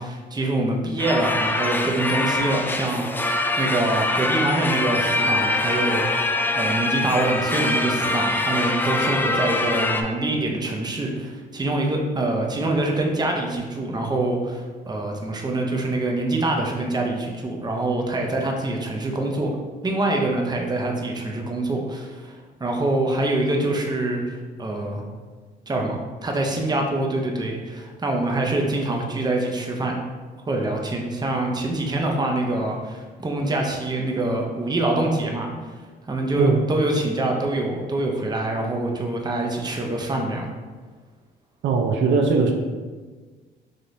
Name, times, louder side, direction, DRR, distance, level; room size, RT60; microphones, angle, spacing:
voice 1, 0.0-19.5 19.8-25.0 25.7-30.0 30.5-35.5 36.1-40.5, right 2 dB, 20° right, 1 dB, 0.6 m, -25 dB
sound 1, 1.0-10.0, left 2 dB, 10° left, 0.3 m, -24 dB
voice 2, 41.6-42.5, right 4 dB, 70° right, 2 dB, 0.5 m, -20 dB
4.9 x 2.8 x 2.6 m, 1.4 s
cardioid pair, 90°, 20 cm